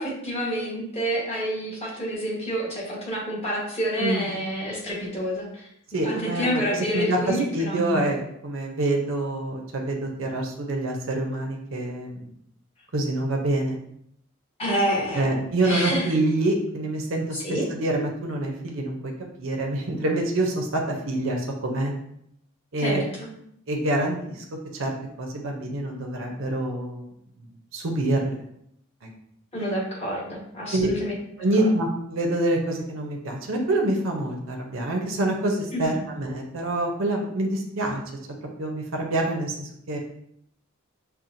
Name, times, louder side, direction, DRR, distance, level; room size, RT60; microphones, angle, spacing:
voice 1, 0.0-5.6 6.0-8.0 14.6-16.0 17.3-17.6 22.8-23.3 29.5-31.1 35.7-36.0, equal, 30° left, -5 dB, 1.2 m, -28 dB
voice 2, 4.0-4.3 5.9-12.3 12.9-13.8 15.1-19.1 19.4-20.8 21.1-21.9 22.7-23.0 23.7-24.4 24.8-27.0 27.7-28.3 29.0-29.1 30.7-30.9 31.4-38.0 38.6-40.0, right 1 dB, 70° right, 1 dB, 0.7 m, -26 dB
5.7 x 2.2 x 2.6 m, 0.73 s
head